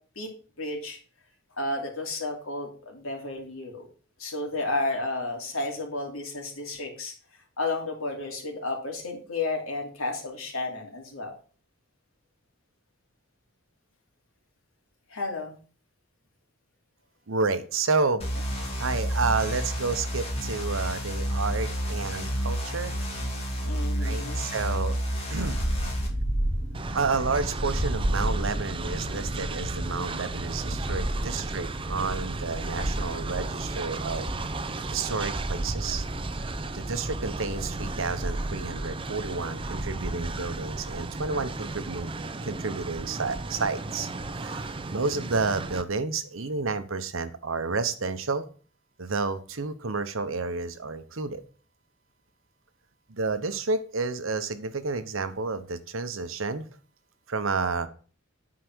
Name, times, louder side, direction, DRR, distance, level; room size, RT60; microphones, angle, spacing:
voice 1, 0.6-1.0 1.6-3.9 4.2-7.1 7.6-11.3 15.1-15.6 23.6-24.5, left 2 dB, 85° left, 1 dB, 3.0 m, -32 dB
voice 2, 17.3-18.2 18.8-23.0 24.0-25.0 25.3-25.6 26.9-34.3 34.9-36.1 36.7-42.1 42.4-44.1 44.4-48.5 49.0-51.4 53.1-56.7 57.3-57.9, right 4 dB, 70° right, 11 dB, 0.9 m, -30 dB
sound 1, 18.2-26.1, equal, 30° left, 2.6 m, -30 dB
sound 2, 25.3-42.0, right 1 dB, 60° left, 2.7 m, -34 dB
Train, 26.7-45.8, right 3 dB, 25° right, 0.5 m, -35 dB
10.0 x 4.8 x 6.2 m, 0.41 s
head